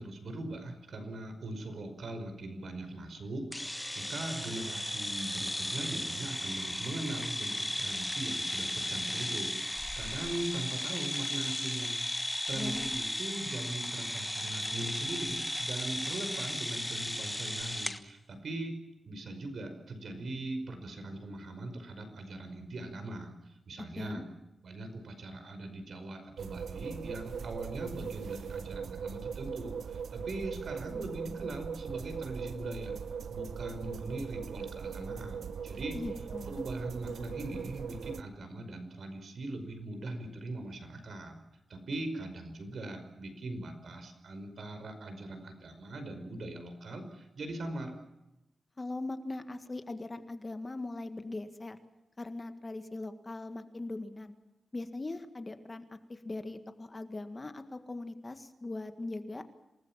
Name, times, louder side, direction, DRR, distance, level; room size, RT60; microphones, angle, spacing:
voice 1, 0.0-18.8 19.1-24.3 24.6-33.0 33.3-36.0 36.5-41.4 41.7-48.0, right 2 dB, 65° right, 7 dB, 5.3 m, -40 dB
sound 1, 3.5-18.0, left 1 dB, 5° left, 1.4 m, -35 dB
voice 2, 12.5-12.9 24.0-24.3 35.9-36.6 48.8-51.8 52.2-54.3 54.7-59.4, left 2 dB, 25° left, 8 dB, 1.7 m, -40 dB
sound 2, 26.4-38.2, right 6 dB, 90° right, 0.9 m, -40 dB
27.5 x 19.0 x 7.4 m, 0.94 s
wide cardioid pair, 120°, 0 cm